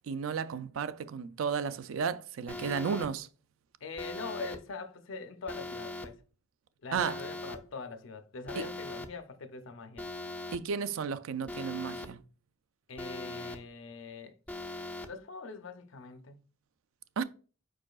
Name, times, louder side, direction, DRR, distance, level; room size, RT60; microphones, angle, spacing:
voice 1, 0.1-3.3 6.9-7.2 10.5-12.2 17.2-17.3, right 6 dB, 80° right, 0.4 m, -33 dB
Alarm, 2.5-3.1 4.0-4.6 5.5-6.1 7.0-7.6 8.5-9.1 10.0-10.6 11.5-12.1 13.0-13.6 14.5-15.1, left 2 dB, 5° left, 0.3 m, -40 dB
voice 2, 3.8-6.2 6.8-10.1 12.9-14.3 15.0-16.5, left 4 dB, 70° left, 0.6 m, -43 dB
4.9 x 4.6 x 2.3 m
head